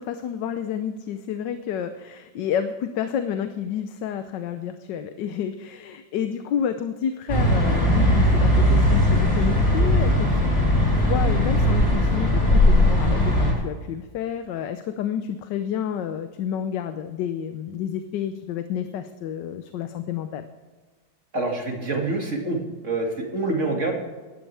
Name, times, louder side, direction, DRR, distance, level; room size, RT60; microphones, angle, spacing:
voice 1, 0.0-10.7 11.0-20.5, left 8 dB, 80° left, 9 dB, 1.4 m, -30 dB
sound 1, 7.3-13.5, left 1 dB, 35° left, 4.3 m, -19 dB
voice 2, 21.3-23.9, right 2 dB, 45° right, 0 dB, 2.5 m, -26 dB
17.5 x 12.5 x 3.4 m, 1.4 s
omnidirectional pair, 1.9 m